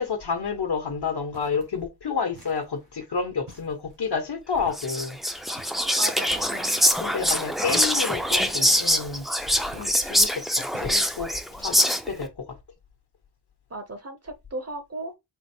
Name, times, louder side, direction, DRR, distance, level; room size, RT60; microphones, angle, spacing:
voice 1, 0.0-5.2 6.8-9.3 9.7-11.3 11.6-12.6, left 5 dB, 70° left, 1.2 m, -30 dB
sound 1, 1.3-1.8 2.3-2.9 3.5-4.1 4.6-5.0 5.6-6.1 7.7-8.2 8.7-9.2 9.7-10.2 10.7-11.2 11.7-12.2, right 2 dB, 85° right, 1.6 m, -50 dB
Whispering, 4.8-12.2, equal, ahead, 0.5 m, -24 dB
voice 2, 6.0-6.8 13.7-15.1, right 2 dB, 35° right, 0.8 m, -36 dB
4.3 x 2.0 x 4.4 m
wide cardioid pair, 80°, 41 cm